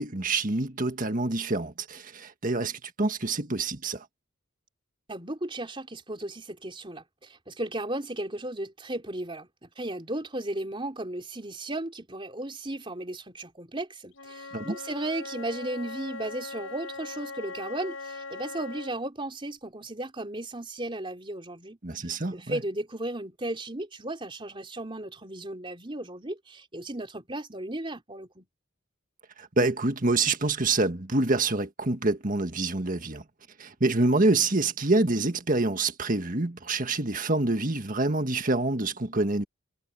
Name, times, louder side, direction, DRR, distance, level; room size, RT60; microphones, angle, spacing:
voice 1, 0.0-4.1 14.5-14.7 21.8-22.6 29.4-33.2 33.6-39.4, right 2 dB, 40° right, 1.7 m, -26 dB
voice 2, 5.1-28.5, right 1 dB, 25° right, 3.8 m, -35 dB
Wind instrument woodwind instrument, 14.1-19.1, left 3 dB, 75° left, 7.5 m, -40 dB
head